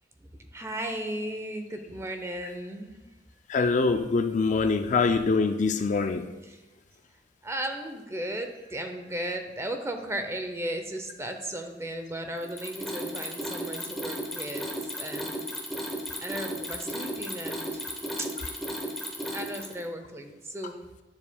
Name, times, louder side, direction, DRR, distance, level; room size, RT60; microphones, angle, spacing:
voice 1, 0.2-3.0 6.4-6.6 7.4-14.7 14.9-15.4 16.2-17.8 18.2-18.3 19.3-20.8, right 1 dB, 15° right, 5 dB, 0.6 m, -35 dB
voice 2, 3.5-6.3, left 4 dB, 45° left, 8 dB, 0.4 m, -24 dB
Mechanisms, 12.4-19.9, equal, ahead, 1.0 m, -34 dB
10.0 x 7.2 x 2.3 m, 1.1 s
head